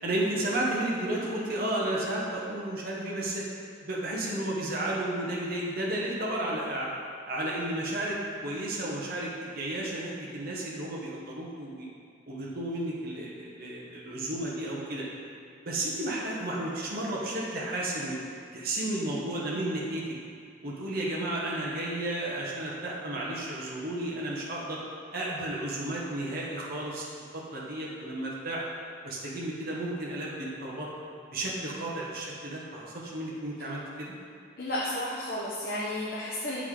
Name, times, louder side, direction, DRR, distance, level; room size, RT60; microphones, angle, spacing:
voice 1, 0.0-3.4 3.8-6.9 7.3-8.2 8.4-11.9 12.3-15.0 15.6-18.2 18.5-20.0 20.6-24.8 25.1-27.1 27.3-28.6 29.0-30.9 31.3-34.1, right 1 dB, 50° right, -5 dB, 1.1 m, -32 dB
voice 2, 34.6-36.6, left 1 dB, 50° left, -8 dB, 0.9 m, -32 dB
7.8 x 4.8 x 3.8 m, 2.3 s
head